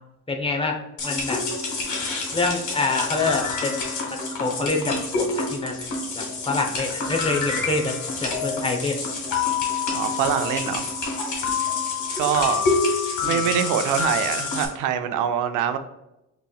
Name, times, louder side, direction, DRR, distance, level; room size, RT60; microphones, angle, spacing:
voice 1, 0.3-0.8 1.0-1.4 2.3-3.8 4.1-5.7 6.2-9.0 13.2-13.4, left 3 dB, 20° left, 2 dB, 0.7 m, -26 dB
sound 1, 1.0-14.7, left 4 dB, 75° left, 1.4 m, -27 dB
voice 2, 9.9-10.9 12.2-12.8 13.2-15.8, right 9 dB, 85° right, 9 dB, 0.5 m, -24 dB
5.4 x 3.1 x 2.3 m, 0.89 s
cardioid pair, 90°, 30 cm